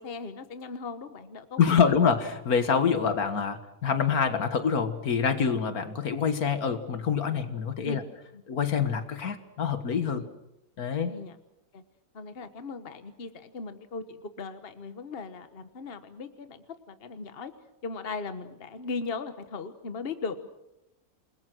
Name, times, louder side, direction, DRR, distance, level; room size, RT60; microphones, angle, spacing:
voice 1, 0.0-2.0 7.8-8.0 8.3-8.4 10.1-10.3 11.0-11.4 11.7-11.8 12.1-17.5 17.8-20.5, left 4 dB, 40° left, 10 dB, 1.4 m, -38 dB
voice 2, 1.6-8.0 8.5-10.2 10.8-11.2, left 6 dB, 75° left, 9 dB, 2.0 m, -26 dB
28.0 x 21.0 x 6.2 m, 0.89 s
omnidirectional pair, 1.6 m